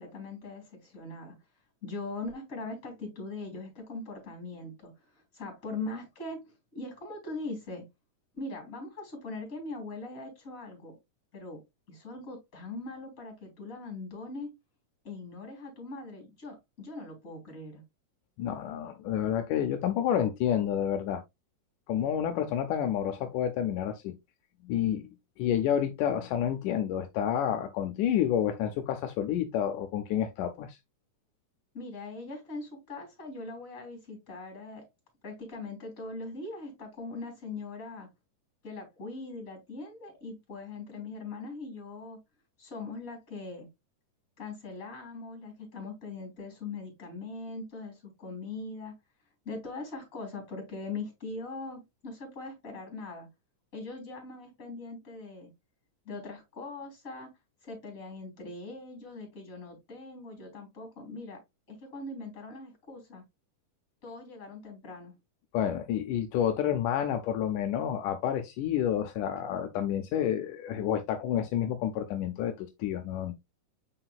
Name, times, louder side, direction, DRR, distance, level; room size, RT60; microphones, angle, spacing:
voice 1, 0.0-1.4 1.8-7.9 8.3-11.0 11.3-11.6 11.9-14.5 15.0-17.8 31.7-34.8 35.2-38.1 38.6-42.2 42.6-43.7 44.4-48.9 49.5-53.3 53.7-55.5 56.1-57.3 57.6-61.4 61.7-63.2 64.0-65.1, left 3 dB, 25° left, 3.7 m, -41 dB
voice 2, 18.4-21.2 21.9-24.1 24.6-25.1 25.4-30.8 65.5-73.3, left 10 dB, 80° left, 2.2 m, -29 dB
7.7 x 5.8 x 2.3 m
omnidirectional pair, 3.7 m